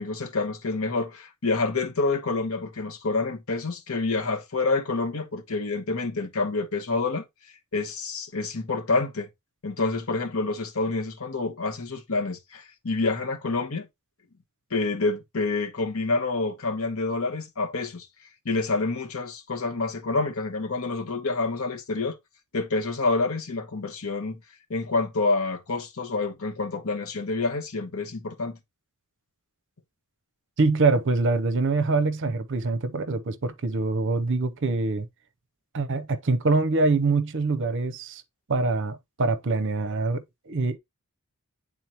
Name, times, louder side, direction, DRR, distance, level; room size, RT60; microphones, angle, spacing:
voice 1, 0.0-7.2 7.7-9.3 9.6-13.9 14.7-18.1 18.4-22.2 22.5-24.4 24.7-28.6, left 3 dB, 65° left, 1.1 m, -28 dB
voice 2, 30.6-35.1 35.7-38.2 38.5-40.8, right 3 dB, 55° right, 0.7 m, -24 dB
9.0 x 3.8 x 2.9 m
head